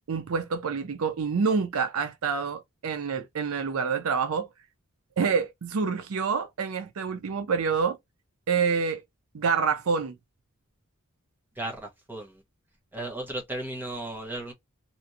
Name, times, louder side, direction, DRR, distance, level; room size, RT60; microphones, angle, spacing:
voice 1, 0.0-4.5 5.2-8.0 8.5-9.0 9.3-10.2, right 5 dB, 75° right, 0.5 m, -27 dB
voice 2, 11.5-12.4 12.9-14.5, right 1 dB, 10° right, 0.9 m, -35 dB
2.9 x 2.5 x 2.6 m
head